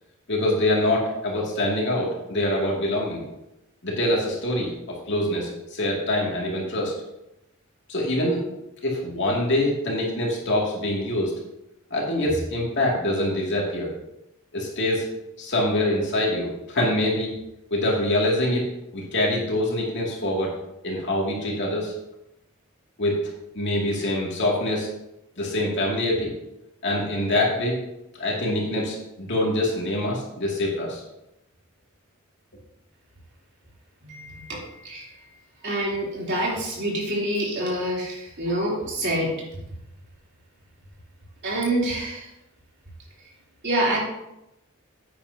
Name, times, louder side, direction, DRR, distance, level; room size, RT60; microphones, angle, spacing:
voice 1, 0.3-3.2 3.8-6.9 7.9-8.4 8.8-11.3 11.9-13.9 14.5-15.1 15.4-17.3 17.7-20.5 20.8-21.9 23.0-23.2 23.5-24.9 25.4-26.3 26.8-27.8 28.2-31.0, left 1 dB, 60° left, -3 dB, 2.4 m, -25 dB
voice 2, 34.0-35.1 35.6-39.3 41.4-42.3 43.6-44.0, right 1 dB, 55° right, -4 dB, 3.3 m, -26 dB
10.5 x 8.7 x 2.8 m, 0.88 s
head